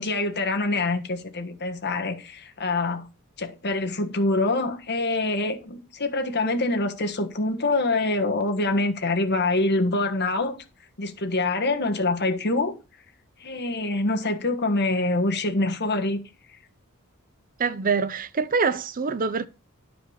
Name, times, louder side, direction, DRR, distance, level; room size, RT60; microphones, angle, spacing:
voice 1, 0.0-3.1 3.4-10.6 11.0-12.7 13.4-16.2, left 2 dB, 50° left, 1.4 m, -25 dB
voice 2, 17.6-19.5, right 5 dB, 40° right, 0.5 m, -25 dB
11.0 x 5.0 x 6.4 m
head